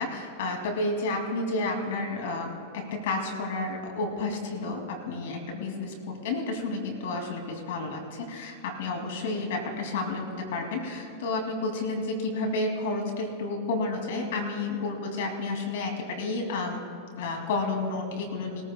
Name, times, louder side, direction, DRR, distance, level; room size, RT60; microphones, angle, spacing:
voice 1, 0.0-16.8 17.2-18.6, left 3 dB, 70° left, 2 dB, 2.5 m, -31 dB
21.0 x 14.5 x 2.3 m, 2.4 s
hypercardioid pair, 110°, 0 cm